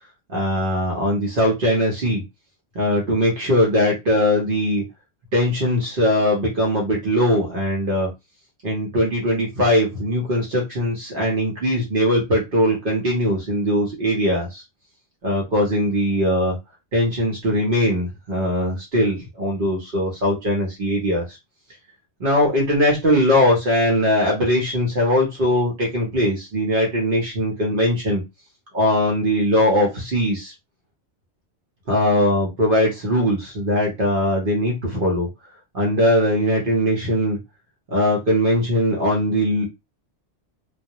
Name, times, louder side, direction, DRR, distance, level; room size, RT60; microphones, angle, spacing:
voice 1, 0.3-2.2 2.7-4.8 5.3-8.1 8.6-14.6 15.2-16.6 16.9-21.4 22.2-28.2 28.7-30.5 31.9-35.3 35.7-37.4 37.9-39.7, equal, 55° right, -2 dB, 0.8 m, -20 dB
2.2 x 2.0 x 2.7 m, 0.23 s
omnidirectional pair, 1.2 m